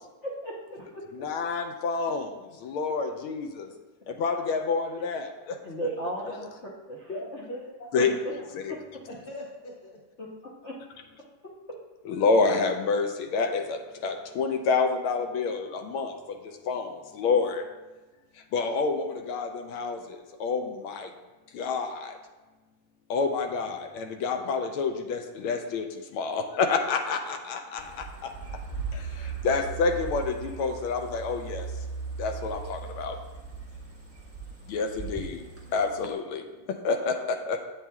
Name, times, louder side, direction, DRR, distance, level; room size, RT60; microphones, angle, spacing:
voice 1, 0.2-1.0 5.6-7.1 8.0-8.1 10.2-10.3 10.6-10.7, right 1 dB, 60° left, -5 dB, 0.7 m, -35 dB
voice 2, 1.1-2.3 2.6-3.7 4.1-5.9 7.9-8.1 8.5-8.8 12.0-16.1 16.7-17.6 18.5-20.0 20.4-21.1 21.5-22.1 23.1-25.8 26.1-27.8 28.9-29.0 29.4-31.7 32.2-33.2 34.7-35.4 35.7-36.4 36.8-37.6, left 4 dB, 80° left, 5 dB, 1.4 m, -28 dB
voice 3, 7.1-8.5 9.1-9.9, left 1 dB, 25° left, -3 dB, 1.3 m, -40 dB
sound 1, 27.8-36.1, right 5 dB, 10° right, 0.6 m, -38 dB
8.3 x 7.4 x 2.3 m, 1.2 s
omnidirectional pair, 2.4 m